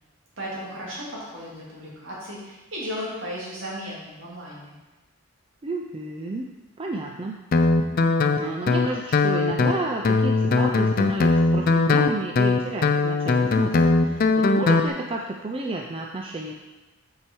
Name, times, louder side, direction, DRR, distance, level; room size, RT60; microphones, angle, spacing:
voice 1, 0.4-4.7, equal, 60° right, -6 dB, 2.3 m, -35 dB
voice 2, 5.6-7.4 8.4-16.5, right 2 dB, 25° right, 0 dB, 0.4 m, -31 dB
Guitar, 7.5-14.9, left 3 dB, 45° left, 0.4 m, -20 dB
6.0 x 4.8 x 4.5 m, 1.1 s
head